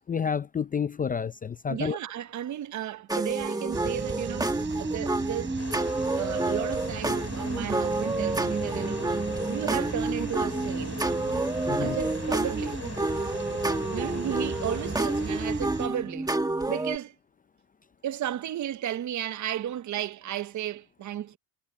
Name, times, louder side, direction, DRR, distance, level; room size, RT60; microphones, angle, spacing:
voice 1, 0.1-2.0 11.7-12.0, left 7 dB, 20° left, 0.5 m, -29 dB
voice 2, 1.7-4.5 4.8-5.6 6.2-9.1 9.5-11.0 11.8-12.8 13.9-16.3 16.7-17.1 18.0-21.4, right 11 dB, 45° right, 0.9 m, -34 dB
sound 1, 3.1-17.0, right 2 dB, 10° right, 1.5 m, -29 dB
sound 2, 3.7-15.9, right 5 dB, 30° right, 3.2 m, -38 dB
sound 3, 5.6-15.6, left 7 dB, 40° left, 7.2 m, -42 dB
cardioid pair, 105°, 41 cm